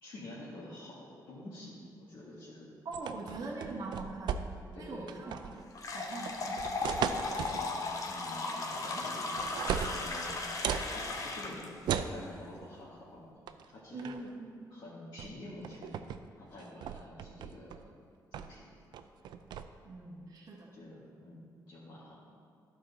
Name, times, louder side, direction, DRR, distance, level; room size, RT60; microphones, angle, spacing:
voice 1, 0.0-2.7 3.3-3.9 4.7-5.2 6.4-10.3 10.9-14.1 14.7-18.0 18.3-18.7 20.7-22.2, left 1 dB, 70° left, -9 dB, 1.6 m, -48 dB
voice 2, 2.8-5.4 5.9-6.6 13.9-14.5 19.8-20.7, right 3 dB, 55° right, -2 dB, 1.0 m, -42 dB
sound 1, 2.9-4.8 5.1-5.6 6.3-7.7 8.7-9.1 9.4-10.9 11.9-12.2 13.5-13.6 14.0-14.3 15.2-15.3 15.6-16.2 16.6-17.8 18.3-18.6 18.9-19.6, right 8 dB, 85° right, 0.3 m, -36 dB
sound 2, 5.7-11.7, left 3 dB, 50° left, 0.8 m, -36 dB
11.5 x 4.6 x 4.1 m, 2.3 s
cardioid pair, 110°, 7 cm